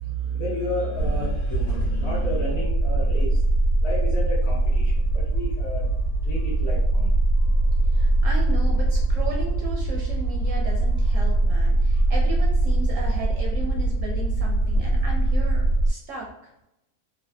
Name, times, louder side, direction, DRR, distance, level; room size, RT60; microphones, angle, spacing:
voice 1, 0.0-3.4 3.8-5.8 6.2-7.1 12.0-12.1, equal, 45° left, -5 dB, 1.2 m, -31 dB
sound 1, 1.0-15.9, right 2 dB, 70° left, 1.0 m, -22 dB
voice 2, 7.9-16.3, right 3 dB, 65° right, -1 dB, 0.8 m, -35 dB
3.3 x 2.1 x 2.7 m, 0.85 s
omnidirectional pair, 1.6 m